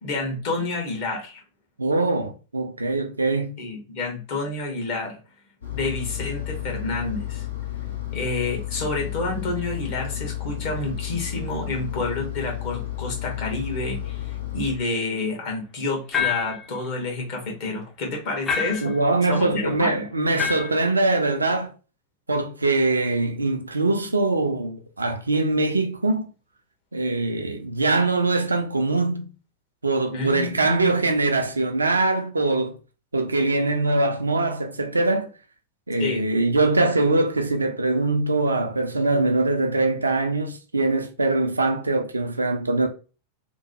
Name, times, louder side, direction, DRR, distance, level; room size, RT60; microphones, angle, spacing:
voice 1, 0.0-1.4 3.6-5.2 5.7-7.5 8.1-19.0 19.3-20.1 30.1-30.9 36.0-36.3, left 3 dB, 50° left, 1.1 m, -29 dB
voice 2, 1.8-3.6 18.8-21.7 22.3-26.3 26.9-29.3 29.8-32.8 33.1-35.3 35.9-42.9, right 2 dB, 80° right, 0.4 m, -22 dB
Engine, 5.6-14.7, left 14 dB, 75° left, 0.7 m, -32 dB
sound 1, 16.1-16.7 18.5-19.0 20.4-20.8, left 7 dB, 20° left, 0.5 m, -26 dB
2.9 x 2.1 x 2.7 m
figure-of-eight pair, 90°, 0 cm